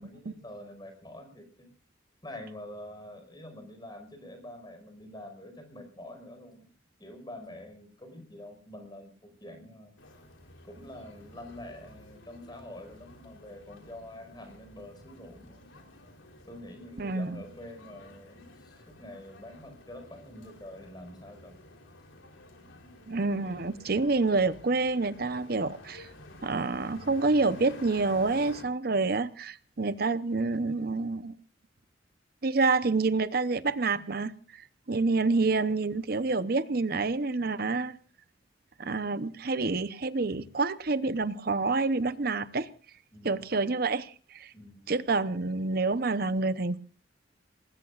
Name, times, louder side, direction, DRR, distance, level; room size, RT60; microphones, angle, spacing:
voice 1, 0.0-1.7 2.2-6.7 7.0-9.9 10.6-15.7 16.5-21.5 43.1-43.5 44.5-44.9, left 1 dB, 25° left, 4.9 m, -46 dB
sound 1, 10.0-28.6, left 1 dB, 90° left, 3.7 m, -52 dB
voice 2, 17.0-17.4 23.1-26.1 26.4-31.4 32.4-38.0 38.8-42.7 43.2-44.5 44.9-46.8, right 3 dB, 50° right, 0.8 m, -28 dB
28.0 x 20.0 x 2.5 m
head